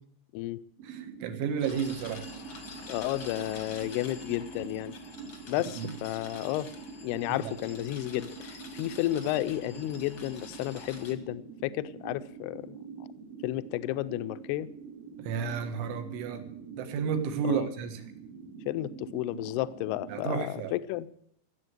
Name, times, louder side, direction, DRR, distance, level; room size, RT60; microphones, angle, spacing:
sound 1, 0.8-20.4, right 5 dB, 65° right, 2.8 m, -45 dB
voice 1, 0.8-2.2 5.8-5.9 7.3-7.5 15.2-16.5 16.8-18.0 20.1-20.7, right 6 dB, 85° right, 3.9 m, -32 dB
sound 2, 1.6-11.1, left 5 dB, 65° left, 1.2 m, -47 dB
voice 2, 2.9-4.9 5.5-6.7 7.0-12.8 13.4-14.7 17.4-17.7 18.7-21.1, left 15 dB, 85° left, 2.3 m, -32 dB
15.5 x 8.0 x 7.9 m
omnidirectional pair, 5.3 m